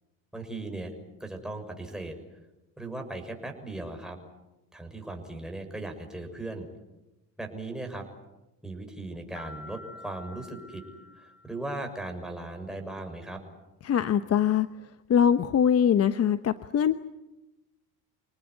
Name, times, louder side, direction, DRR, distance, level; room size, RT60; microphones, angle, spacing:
voice 1, 0.3-0.9 1.2-2.1 2.8-4.2 4.7-6.7 7.4-8.1 8.6-10.8 11.2-13.4, right 2 dB, ahead, 3 dB, 6.5 m, -38 dB
sound 1, 9.4-12.0, left 3 dB, 65° left, 7.3 m, -48 dB
voice 2, 13.8-14.7 15.1-17.0, left 8 dB, 40° left, 12 dB, 1.1 m, -22 dB
27.0 x 19.0 x 9.8 m, 1.0 s
supercardioid pair, 100°, 38 cm